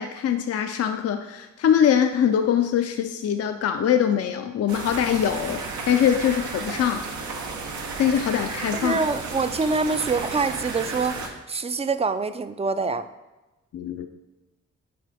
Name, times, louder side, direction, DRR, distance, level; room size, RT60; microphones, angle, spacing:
voice 1, 0.0-7.1 8.0-9.0 13.7-14.1, left 9 dB, 55° left, 7 dB, 0.4 m, -23 dB
sound 1, 4.7-11.3, right 4 dB, 90° right, 0.9 m, -33 dB
voice 2, 8.7-13.0, right 4 dB, 20° right, 12 dB, 0.3 m, -25 dB
7.7 x 4.5 x 3.4 m, 1.1 s
cardioid pair, 85°, 29 cm